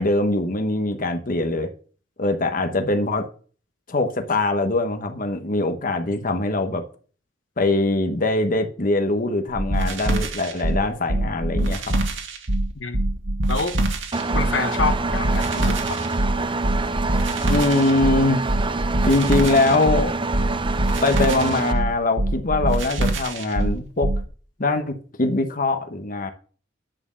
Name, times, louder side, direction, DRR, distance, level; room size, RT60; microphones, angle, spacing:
voice 1, 0.0-1.7 2.2-3.3 3.9-6.8 7.6-11.9 17.5-18.4 19.0-20.1 21.0-24.1 24.6-26.3, left 2 dB, 45° left, 1.1 m, -22 dB
sound 1, 9.6-24.2, right 1 dB, 85° right, 2.0 m, -24 dB
Engine, 14.1-21.7, right 3 dB, 25° right, 0.6 m, -26 dB
voice 2, 14.3-16.0, left 4 dB, 75° left, 1.1 m, -27 dB
10.5 x 4.5 x 7.3 m
head